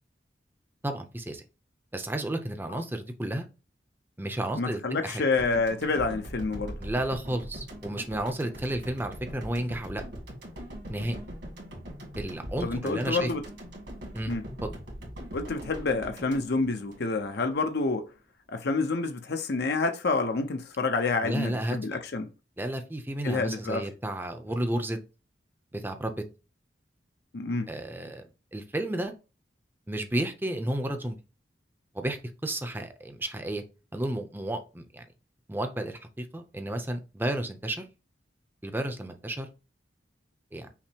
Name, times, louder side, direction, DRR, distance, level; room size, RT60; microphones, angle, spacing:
voice 1, 0.8-1.4 1.9-3.5 4.2-5.2 6.8-10.0 10.9-11.2 12.2-13.3 14.1-14.3 14.6-14.8 21.2-21.8 22.6-25.0 25.7-26.2 27.7-29.1 29.9-31.2 31.9-33.6 33.9-35.1 35.5-37.8 38.6-39.5 40.5-40.7, right 1 dB, 10° right, 0.6 m, -32 dB
voice 2, 4.6-6.7 12.6-13.4 14.3-14.4 15.3-18.1 18.5-22.3 23.2-23.9 27.3-27.7, left 3 dB, 60° left, 0.6 m, -28 dB
sound 1, 5.4-17.6, equal, 70° right, 1.8 m, -41 dB
5.8 x 2.0 x 4.4 m
head